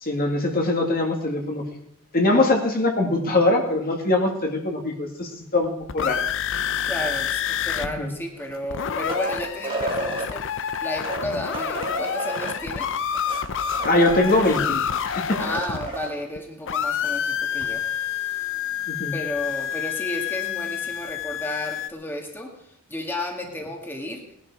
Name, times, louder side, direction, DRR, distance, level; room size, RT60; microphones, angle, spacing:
voice 1, 0.0-1.6 2.1-6.2 8.0-8.1 13.9-15.4 18.9-19.1, left 2 dB, 40° left, 2 dB, 2.0 m, -22 dB
sound 1, 5.6-7.9 8.1-8.2 8.5-16.4 16.7-21.9, left 8 dB, 60° left, 0.7 m, -28 dB
voice 2, 6.8-13.0 15.4-17.8 19.1-22.5 22.9-24.2, left 1 dB, 10° left, 1 dB, 2.0 m, -32 dB
sound 2, 8.4-10.3 10.9-14.6 15.0-15.1 15.3-16.1 17.6-17.7, right 2 dB, 25° right, 2.6 m, -32 dB
18.5 x 11.5 x 4.7 m, 0.71 s
head